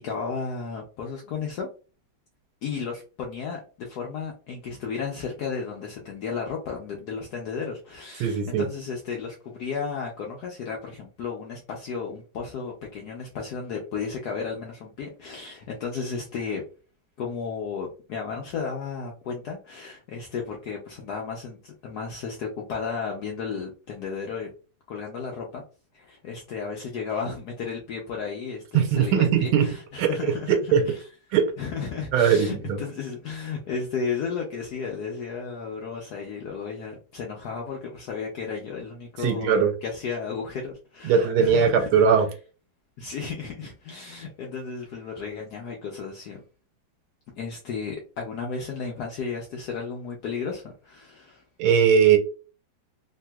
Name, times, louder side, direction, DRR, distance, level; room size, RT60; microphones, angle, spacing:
voice 1, 0.0-1.7 2.6-16.6 17.2-24.5 24.9-25.6 25.9-31.0 31.6-39.6 39.8-41.9 43.0-46.4 47.4-51.4, left 5 dB, 75° left, 0 dB, 0.9 m, -33 dB
voice 2, 8.2-8.6 28.7-29.7 30.0-30.8 31.3-31.5 32.1-32.8 39.2-39.7 41.0-42.3 51.6-52.2, right 7 dB, 80° right, 7 dB, 1.4 m, -20 dB
3.3 x 2.8 x 2.2 m, 0.36 s
omnidirectional pair, 2.3 m